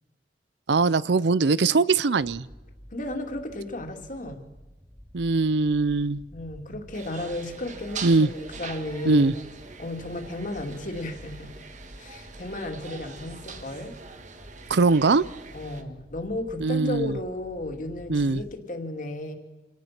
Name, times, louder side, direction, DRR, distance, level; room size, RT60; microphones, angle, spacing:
voice 1, 0.7-2.5 5.1-6.3 8.0-8.3 9.1-9.3 14.7-15.2 16.6-17.2 18.1-18.4, right 3 dB, 80° right, 19 dB, 0.6 m, -21 dB
sound 1, 2.2-18.5, equal, 5° left, 2.0 m, -49 dB
voice 2, 2.9-4.4 6.3-9.2 9.8-11.7 12.0-14.0 15.5-19.3, left 1 dB, 50° left, 4 dB, 2.7 m, -34 dB
sound 2, 6.9-15.8, right 5 dB, 45° right, 1.7 m, -43 dB
27.5 x 18.5 x 6.0 m, 1.1 s
head